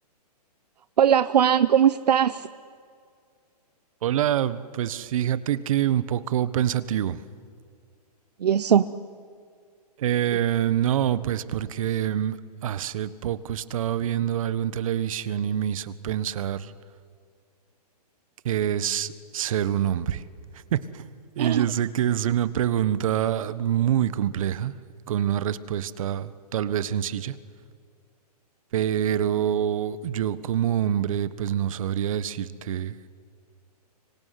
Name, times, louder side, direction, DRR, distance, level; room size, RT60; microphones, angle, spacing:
voice 1, 1.0-2.5 8.4-8.9 21.4-21.7, right 9 dB, 80° right, 14 dB, 0.8 m, -20 dB
voice 2, 4.0-7.2 10.0-12.4 12.6-16.7 18.4-20.2 20.7-21.1 21.4-24.7 25.1-27.3 28.7-33.0, right 10 dB, 55° right, 16 dB, 1.4 m, -26 dB
26.0 x 24.0 x 9.5 m, 2.1 s
hypercardioid pair, 150°, 21 cm